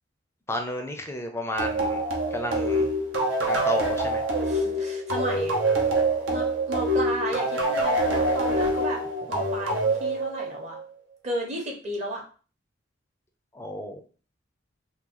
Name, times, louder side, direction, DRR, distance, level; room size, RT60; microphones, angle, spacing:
voice 1, 0.5-2.0 2.3-2.9 3.4-4.2 13.5-14.0, left 1 dB, 15° left, 5 dB, 0.4 m, -32 dB
sound 1, 1.6-10.8, right 1 dB, 80° right, 0.9 m, -25 dB
voice 2, 4.4-5.6 6.3-10.8 11.2-12.2, right 1 dB, 35° right, 0 dB, 0.9 m, -33 dB
3.0 x 2.3 x 3.7 m, 0.38 s
head